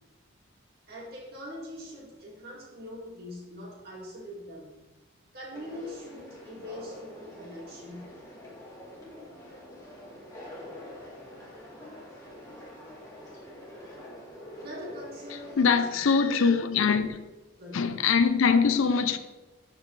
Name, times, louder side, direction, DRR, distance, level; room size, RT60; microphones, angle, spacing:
voice 1, 0.9-4.8 5.3-8.2 14.5-15.9 16.2-16.4 17.6-17.9 18.7-18.8, equal, 45° right, 2.2 m, -43 dB
Conversation, 5.5-15.5, left 1 dB, 15° left, 1.9 m, -45 dB
voice 2, 15.6-17.2 17.7-19.2, left 5 dB, 70° left, 0.5 m, -23 dB
12.5 x 5.0 x 3.3 m
head